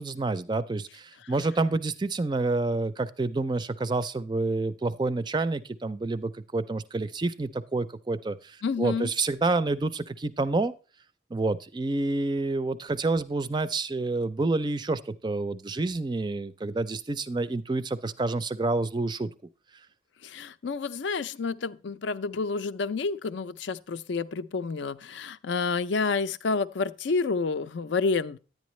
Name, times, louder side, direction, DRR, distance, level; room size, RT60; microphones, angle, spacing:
voice 1, 0.0-10.7 11.3-19.3, right 3 dB, 25° right, 0.4 m, -28 dB
voice 2, 8.6-9.1 20.2-28.4, left 4 dB, 70° left, 0.5 m, -29 dB
10.5 x 9.3 x 3.1 m
head